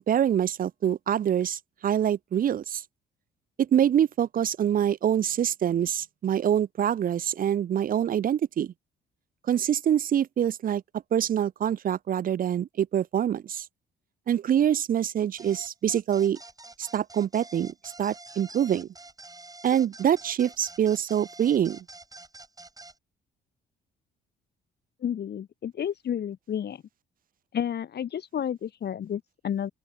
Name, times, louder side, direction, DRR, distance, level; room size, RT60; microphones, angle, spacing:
voice 1, 0.0-2.8 3.6-8.7 9.5-10.8 11.1-13.7 14.3-16.4 16.8-18.9 19.6-21.8, right 9 dB, 45° right, 0.5 m, -25 dB
sound 1, 15.4-22.9, right 2 dB, 20° right, 5.5 m, -47 dB
voice 2, 25.0-26.8 27.5-29.7, left 9 dB, 55° left, 1.6 m, -31 dB
open air
cardioid pair, 90°, 20 cm